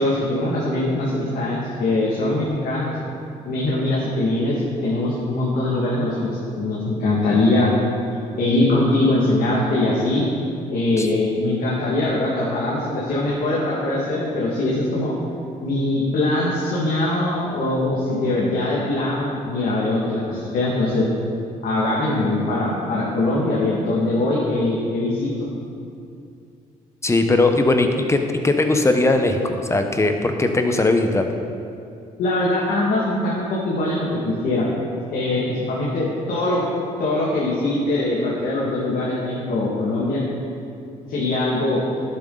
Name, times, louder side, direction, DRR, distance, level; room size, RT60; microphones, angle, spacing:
voice 1, 0.0-2.9 3.5-4.5 4.8-7.7 8.4-10.2 10.7-15.2 15.6-21.0 21.6-25.3 32.2-34.7 35.1-36.6 37.0-40.2 41.1-41.8, left 2 dB, 70° left, -6 dB, 2.0 m, -22 dB
voice 2, 27.0-28.2 28.4-31.3, left 2 dB, 20° left, 5 dB, 1.0 m, -19 dB
11.5 x 7.5 x 3.9 m, 2.5 s
cardioid pair, 80°, 15 cm